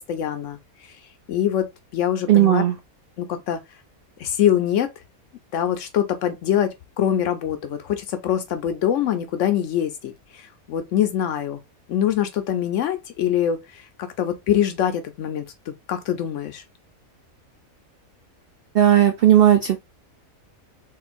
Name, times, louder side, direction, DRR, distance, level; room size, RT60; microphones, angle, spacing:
voice 1, 0.1-0.6 1.3-1.7 1.9-2.6 3.2-3.6 4.2-4.9 5.5-11.6 11.9-16.6, left 10 dB, 65° left, 0.9 m, -24 dB
voice 2, 2.3-2.7 18.7-19.8, right 11 dB, 75° right, 0.5 m, -15 dB
3.6 x 2.5 x 2.4 m
omnidirectional pair, 1.5 m